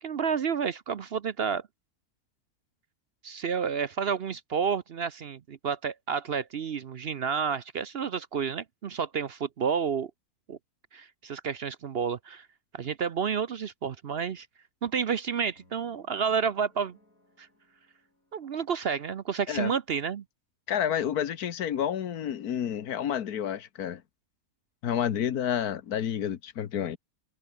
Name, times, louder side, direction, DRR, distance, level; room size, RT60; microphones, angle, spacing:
voice 1, 0.0-1.6 3.2-10.1 10.5-10.6 10.9-12.5 12.7-14.5 14.8-17.0 17.4-17.5 18.3-20.2, right 6 dB, 50° right, 0.8 m, -30 dB
sound 1, 15.5-19.7, left 1 dB, 65° left, 8.4 m, -66 dB
voice 2, 20.7-24.0 24.8-27.0, left 9 dB, 85° left, 1.6 m, -29 dB
omnidirectional pair, 1.6 m